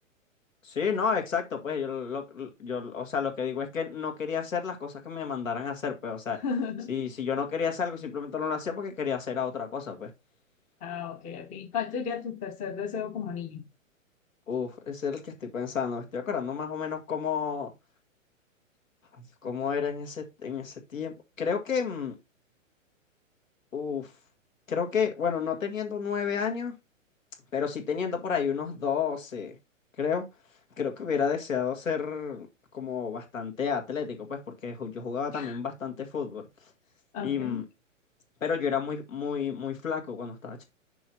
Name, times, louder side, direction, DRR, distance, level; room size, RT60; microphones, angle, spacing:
voice 1, 0.6-6.4 6.9-10.1 14.5-17.7 19.2-22.2 23.7-24.1 24.7-26.7 27.5-29.6 30.0-30.3 30.8-32.5 32.7-36.4 37.2-37.6 38.4-40.6, left 6 dB, 75° left, 2.2 m, -31 dB
voice 2, 6.4-6.9 10.8-13.6 35.3-35.6 37.1-37.6, left 6 dB, 20° left, 0.9 m, -34 dB
6.2 x 4.8 x 4.2 m
figure-of-eight pair, 120°, 40 cm